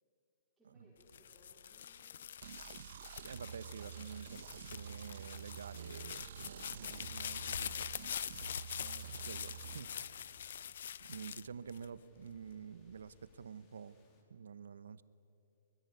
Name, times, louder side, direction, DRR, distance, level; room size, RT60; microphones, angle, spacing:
voice 1, 0.6-2.3 6.4-7.9, right 1 dB, ahead, -10 dB, 4.3 m, -68 dB
sound 1, 1.0-12.4 12.9-13.5, left 9 dB, 55° left, 0.5 m, -45 dB
sound 2, 2.4-9.8, right 9 dB, 50° right, 0.9 m, -49 dB
voice 2, 3.2-7.8 8.8-9.9 11.1-14.0 14.3-15.0, right 6 dB, 80° right, 16 dB, 0.9 m, -49 dB
sound 3, 3.6-14.2, left 3 dB, 20° left, 2.9 m, -75 dB
24.5 x 21.5 x 9.5 m, 3.0 s
hypercardioid pair, 170°, 0 cm